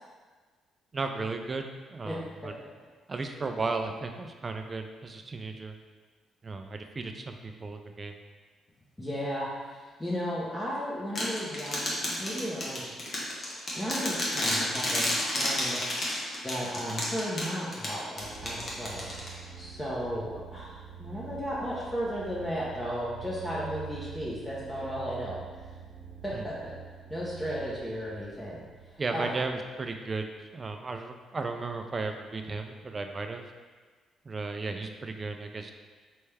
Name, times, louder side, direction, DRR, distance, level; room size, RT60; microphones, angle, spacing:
voice 1, 0.9-2.5 3.1-5.8 6.4-8.2 26.3-26.4 29.0-33.4 34.2-35.7, right 3 dB, 30° right, 5 dB, 0.4 m, -35 dB
voice 2, 9.0-12.9 13.8-15.8 16.4-19.1 19.6-25.4 26.2-26.7 27.1-29.5, equal, 15° left, -7 dB, 0.8 m, -35 dB
sound 1, 11.2-19.6, left 1 dB, 45° left, 1.1 m, -31 dB
sound 2, 18.2-30.1, right 7 dB, 75° right, 1.0 m, -46 dB
4.4 x 3.3 x 3.3 m, 1.4 s
cardioid pair, 90°, 0 cm